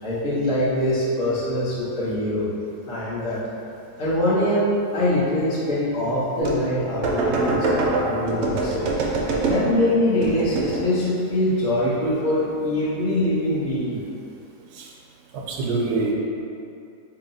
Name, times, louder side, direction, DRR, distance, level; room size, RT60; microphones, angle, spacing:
voice 1, 0.0-2.5 2.9-3.4 4.0-4.7 4.9-8.9 9.4-14.0, left 1 dB, 60° left, -9 dB, 1.2 m, -23 dB
sound 1, 6.4-6.7 7.0-9.8 10.2-10.9, right 2 dB, 70° right, 0.9 m, -24 dB
voice 2, 15.3-16.1, right 3 dB, 90° right, -2 dB, 1.1 m, -25 dB
2.8 x 2.8 x 3.8 m, 2.6 s
omnidirectional pair, 1.6 m